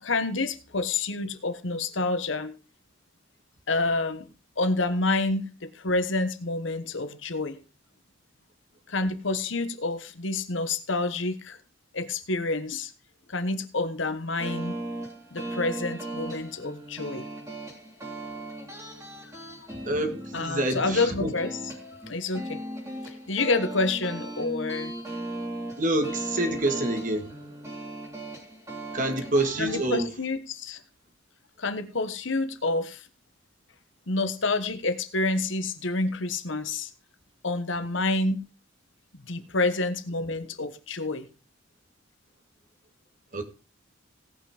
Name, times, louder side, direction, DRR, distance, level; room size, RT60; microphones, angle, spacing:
voice 1, 0.0-2.6 3.7-4.3 4.6-7.6 8.9-11.6 11.9-12.9 13.3-14.7 15.3-17.3 19.2-19.3 20.3-21.6 22.1-22.6 23.0-24.9 29.6-30.8 31.6-33.1 34.1-36.9 37.4-38.4 39.1-41.3, left 3 dB, 70° left, 9 dB, 1.2 m, -28 dB
sound 1, 14.4-29.9, right 1 dB, 15° right, 3.2 m, -37 dB
voice 2, 19.8-21.3 25.8-27.6 28.9-30.1 43.3-43.4, right 1 dB, 40° right, 7 dB, 1.9 m, -27 dB
17.5 x 5.9 x 4.9 m, 0.32 s
head